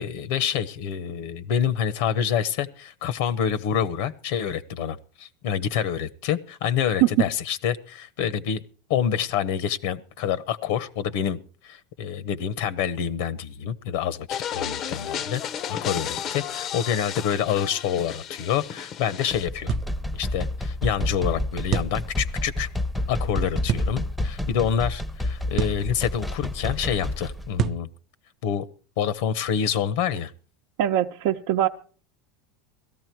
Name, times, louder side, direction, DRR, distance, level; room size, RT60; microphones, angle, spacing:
voice 1, 0.0-8.6 8.9-11.4 11.6-15.4 15.7-19.8 20.1-22.7 23.1-27.9 28.4-28.6 29.0-30.3, left 8 dB, 70° left, 18 dB, 0.9 m, -27 dB
sound 1, 14.3-19.5, left 9 dB, 40° left, 0.6 m, -33 dB
sound 2, 19.3-27.5, left 1 dB, 5° left, 0.7 m, -29 dB
sound 3, 19.7-19.9 21.7-22.0 23.7-23.9 25.6-25.9 27.6-27.9, right 9 dB, 35° right, 0.6 m, -26 dB
voice 2, 30.8-31.7, right 12 dB, 70° right, 2 dB, 0.8 m, -21 dB
17.0 x 13.5 x 4.6 m, 0.40 s
supercardioid pair, 140°, 0 cm